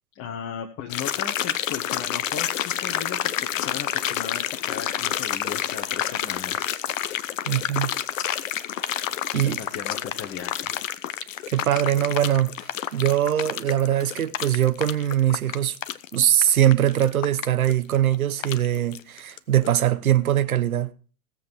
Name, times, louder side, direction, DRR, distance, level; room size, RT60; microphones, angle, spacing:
voice 1, 0.1-6.6 9.3-10.7, left 8 dB, 30° left, 1.6 m, -37 dB
sound 1, 0.9-19.4 19.6-19.7, left 11 dB, 60° left, 0.9 m, -29 dB
voice 2, 7.5-7.9 9.3-9.6 11.5-12.5 12.9-15.8 16.1-20.9, right 11 dB, 70° right, 0.9 m, -22 dB
16.5 x 7.6 x 4.7 m
figure-of-eight pair, 90°, 44 cm